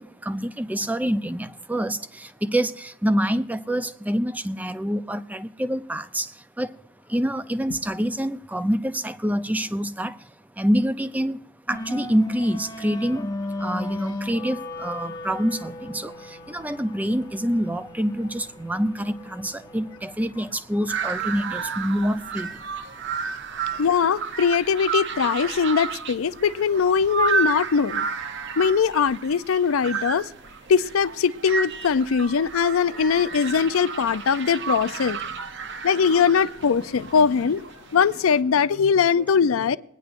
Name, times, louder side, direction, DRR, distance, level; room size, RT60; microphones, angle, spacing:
voice 1, 0.0-6.3 6.6-6.7 7.1-10.2 10.6-11.4 11.7-13.3 13.6-22.5 39.3-39.4, equal, 10° right, 0.5 m, -26 dB
sound 1, 11.7-24.0, left 1 dB, 20° left, 0.7 m, -38 dB
sound 2, 20.9-38.4, right 5 dB, 60° right, 0.7 m, -31 dB
voice 2, 23.7-28.1 28.6-30.3 30.7-35.3 35.8-39.8, left 6 dB, 90° left, 0.5 m, -21 dB
21.0 x 10.0 x 2.6 m
head